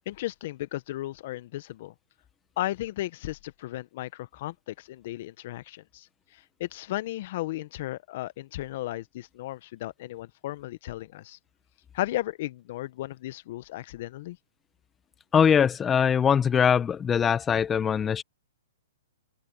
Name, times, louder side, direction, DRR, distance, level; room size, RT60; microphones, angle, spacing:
voice 1, 0.1-1.9 2.6-6.1 6.3-11.4 11.9-14.4, left 15 dB, 50° left, 1.2 m, -35 dB
voice 2, 15.3-18.2, left 7 dB, 15° left, 1.5 m, -22 dB
open air
hypercardioid pair, 135°, 0 cm